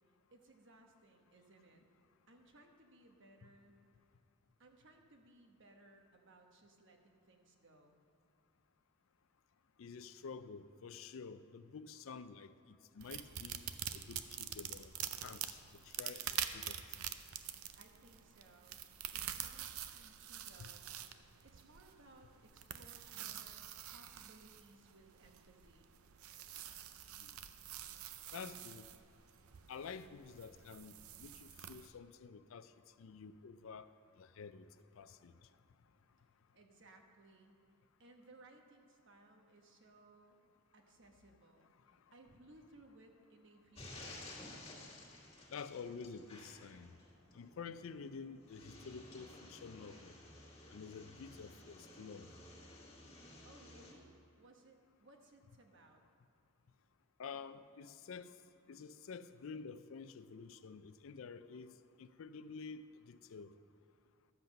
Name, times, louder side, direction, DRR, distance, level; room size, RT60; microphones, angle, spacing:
voice 1, 0.3-1.8 2.3-3.8 4.6-8.0 17.5-18.8 19.1-20.8 21.4-25.9 36.5-37.6 38.0-40.4 40.7-41.7 42.1-44.3 53.4-56.0, right 2 dB, 60° right, 3 dB, 1.1 m, -63 dB
voice 2, 9.8-13.6 13.9-14.9 15.2-16.8 20.6-20.7 27.2-27.3 28.3-28.9 29.7-30.9 31.2-32.7 33.0-33.9 34.2-34.7 35.0-35.3 45.5-46.9 47.3-50.1 50.7-52.3 57.2-58.3 58.7-61.7 62.0-63.5, left 5 dB, 65° left, 13 dB, 0.4 m, -49 dB
sound 1, 13.0-31.9, right 10 dB, 80° right, 0.5 m, -46 dB
sound 2, 43.7-53.9, left 2 dB, 25° left, 1.9 m, -55 dB
12.0 x 7.9 x 5.3 m, 2.5 s
head